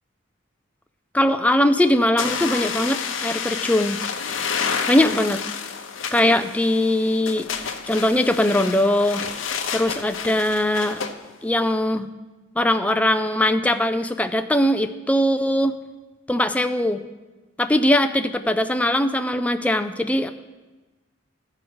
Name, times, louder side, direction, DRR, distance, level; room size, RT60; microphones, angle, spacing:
voice 1, 1.1-4.0 4.9-5.4 6.1-7.5 7.9-9.2 9.7-11.0 11.4-12.1 12.6-15.8 16.3-17.0 17.6-20.3, left 1 dB, 5° left, 8 dB, 0.4 m, -20 dB
sound 1, 2.2-11.1, left 6 dB, 80° left, 0.7 m, -29 dB
13.5 x 4.9 x 6.1 m, 1.2 s
head